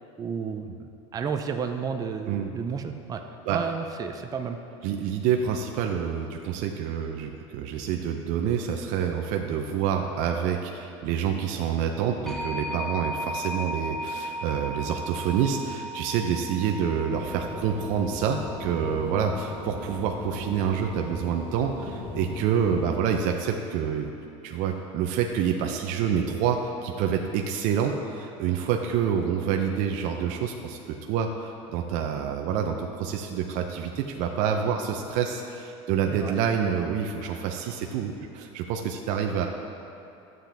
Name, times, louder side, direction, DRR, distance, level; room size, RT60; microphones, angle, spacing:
voice 1, 0.2-0.7 1.1-3.2 3.5-4.6 36.1-36.3, right 6 dB, 25° right, 5 dB, 0.6 m, -31 dB
voice 2, 4.8-24.1 24.4-39.5, right 7 dB, 60° right, 3 dB, 0.7 m, -27 dB
sound 1, 12.3-22.9, equal, ahead, 1.1 m, -37 dB
sound 2, 17.1-22.9, left 3 dB, 35° left, 1.3 m, -38 dB
12.5 x 7.7 x 3.5 m, 2.8 s
supercardioid pair, 115°, 15 cm